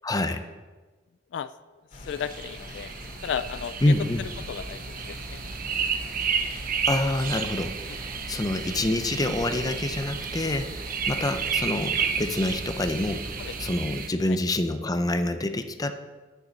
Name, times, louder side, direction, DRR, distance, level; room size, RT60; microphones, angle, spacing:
voice 1, 0.0-0.4 3.8-4.2 6.9-7.7 8.3-10.7 11.1-13.3 13.6-15.9, left 1 dB, 20° left, 7 dB, 0.6 m, -26 dB
sound 1, 1.9-13.7, left 1 dB, 45° left, 2.4 m, -42 dB
voice 2, 2.1-2.9 3.2-3.7 4.5-5.4 13.4-13.5 14.3-14.4, left 8 dB, 70° left, 14 dB, 0.3 m, -34 dB
sound 2, 2.1-14.1, right 6 dB, 55° right, 0.7 m, -32 dB
8.1 x 6.6 x 7.2 m, 1.3 s
head